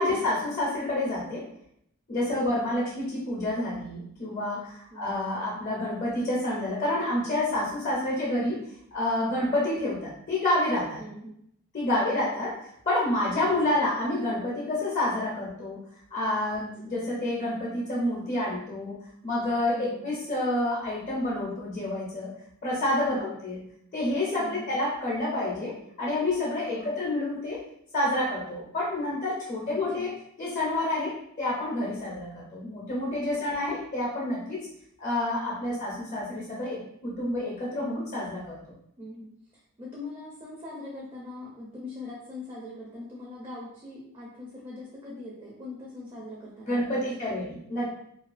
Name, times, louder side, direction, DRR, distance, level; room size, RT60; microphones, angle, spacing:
voice 1, 0.0-1.4 2.1-8.6 8.9-11.0 11.7-12.6 12.9-15.8 16.1-22.3 22.6-23.6 23.9-27.6 27.9-30.1 30.4-34.7 35.0-38.6 46.7-47.9, left 1 dB, 35° left, -5 dB, 0.5 m, -28 dB
voice 2, 11.0-11.3 11.9-12.3 16.6-16.9 19.7-20.1 23.1-23.4 24.4-24.8 26.8-27.0 29.7-30.1 33.3-33.4 35.6-35.8 39.0-39.3 39.8-47.5, left 2 dB, 25° right, -5 dB, 0.4 m, -42 dB
2.3 x 2.3 x 2.4 m, 0.72 s
head